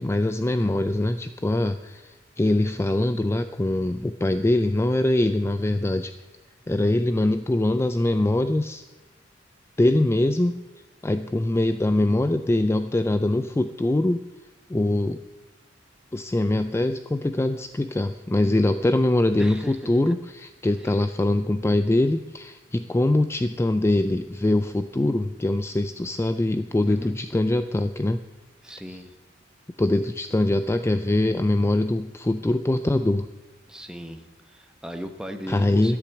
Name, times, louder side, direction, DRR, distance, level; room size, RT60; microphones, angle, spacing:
voice 1, 0.0-6.1 6.7-8.9 9.8-10.6 11.0-14.2 14.7-15.2 16.1-28.2 28.9-29.0 29.8-33.3 35.5-36.0, left 1 dB, 15° left, 10 dB, 0.4 m, -23 dB
voice 2, 19.4-20.1 26.8-27.2 28.6-29.1 33.7-36.0, equal, 5° right, 5 dB, 1.0 m, -38 dB
13.5 x 8.5 x 7.1 m, 1.2 s
head